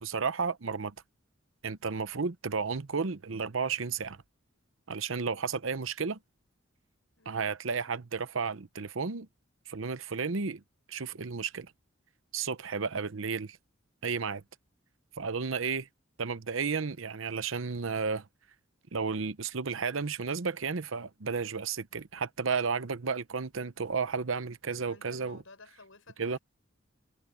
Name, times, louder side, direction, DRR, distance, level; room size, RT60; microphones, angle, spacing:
voice 1, 0.0-0.9 1.6-4.2 4.9-6.2 7.3-9.3 9.7-10.6 10.9-11.7 12.3-13.6 14.0-14.4 15.2-15.9 16.2-18.3 18.9-25.4 26.2-26.4, right 5 dB, 75° right, 0.8 m, -33 dB
voice 2, 7.2-7.5 24.8-26.4, left 3 dB, 75° left, 5.8 m, -54 dB
head